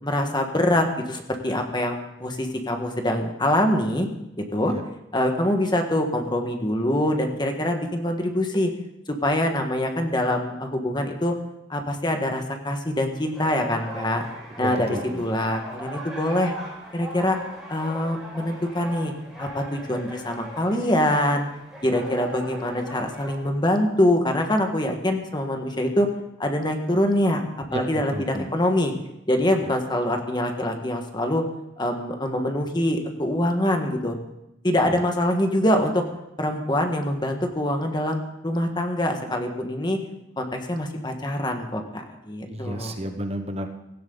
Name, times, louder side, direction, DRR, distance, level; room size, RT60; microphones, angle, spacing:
voice 1, 0.0-4.1 4.5-4.7 5.1-8.7 9.1-11.3 11.7-14.2 14.6-14.9 15.2-16.5 16.9-17.4 17.7-19.1 19.4-21.4 21.8-26.1 26.4-27.4 27.7-28.9 29.3-31.4 31.8-34.2 34.6-36.0 36.4-40.0 40.4-42.9, left 1 dB, 25° left, 4 dB, 1.6 m, -24 dB
sound 1, 13.3-23.4, right 1 dB, 5° right, 4.7 m, -39 dB
voice 2, 14.6-15.2 27.7-27.8 28.1-28.5 34.8-35.0 42.5-43.7, right 1 dB, 35° right, 6 dB, 1.1 m, -32 dB
17.0 x 15.0 x 4.0 m, 0.87 s
head